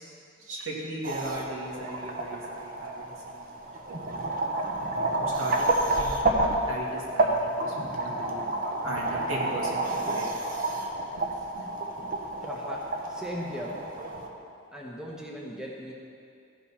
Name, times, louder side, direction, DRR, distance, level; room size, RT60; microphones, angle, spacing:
voice 1, 0.4-3.5 4.0-4.1 5.1-6.4 6.7-8.4 8.8-10.3 11.2-11.3 11.5-11.7, right 1 dB, 80° right, -3 dB, 2.1 m, -38 dB
sound 1, 1.0-14.3, right 2 dB, 40° right, 0.9 m, -30 dB
voice 2, 12.4-13.8 14.7-15.9, equal, 5° right, -4 dB, 1.0 m, -38 dB
14.5 x 5.3 x 5.7 m, 2.5 s
head